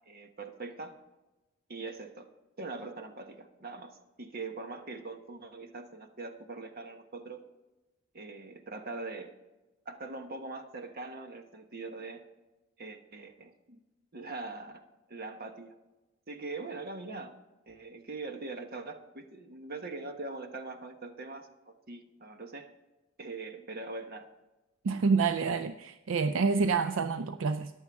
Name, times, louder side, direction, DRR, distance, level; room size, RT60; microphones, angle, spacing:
voice 1, 0.1-0.9 1.7-2.3 2.6-7.4 8.1-9.3 9.8-12.2 12.8-13.8 14.1-15.8 16.3-17.4 17.7-22.7 23.2-24.2, right 3 dB, 50° right, 6 dB, 1.1 m, -42 dB
voice 2, 24.8-27.7, right 4 dB, 70° right, 11 dB, 0.4 m, -28 dB
14.5 x 10.5 x 3.6 m, 1.1 s
head